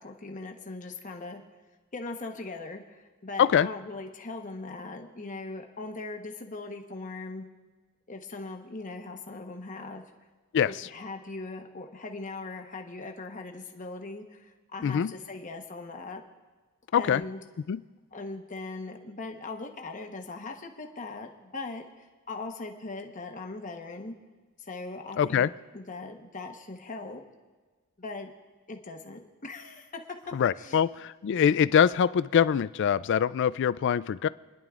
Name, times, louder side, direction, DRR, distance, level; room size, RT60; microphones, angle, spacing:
voice 1, 0.0-1.4 1.9-7.5 8.1-10.0 10.7-16.2 16.9-17.4 18.1-21.8 22.3-24.1 24.7-27.2 28.0-28.3 28.7-30.0 30.6-30.8, left 3 dB, 35° left, 3 dB, 1.1 m, -40 dB
voice 2, 14.8-15.1 16.9-17.2 17.7-17.8 25.2-25.5 30.3-34.3, left 8 dB, 55° left, 17 dB, 0.3 m, -24 dB
29.5 x 11.0 x 2.5 m, 1.4 s
head